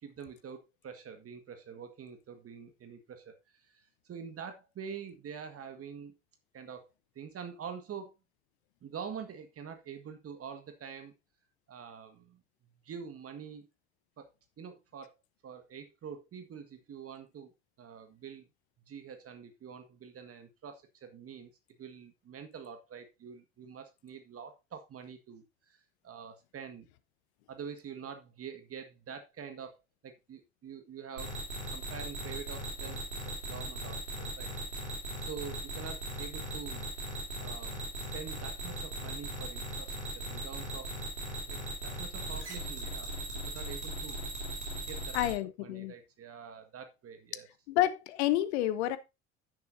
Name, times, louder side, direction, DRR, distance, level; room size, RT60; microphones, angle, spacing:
voice 1, 0.0-6.1 6.5-6.9 7.1-8.1 8.8-11.1 11.7-12.4 12.8-13.7 14.2-14.3 14.6-15.2 15.4-17.5 17.8-18.5 18.9-21.5 21.8-25.8 26.0-26.9 27.5-29.8 30.0-31.4 31.7-34.5 35.3-36.9 37.4-40.9 41.5-44.2 44.8-45.2 45.6-47.5, right 7 dB, 40° right, 1.8 m, -46 dB
sound 1, 31.2-45.3, right 1 dB, 90° right, 3.5 m, -38 dB
voice 2, 45.1-45.9 47.7-49.0, left 14 dB, 70° left, 1.0 m, -29 dB
10.5 x 9.3 x 2.7 m
figure-of-eight pair, 60°, 34 cm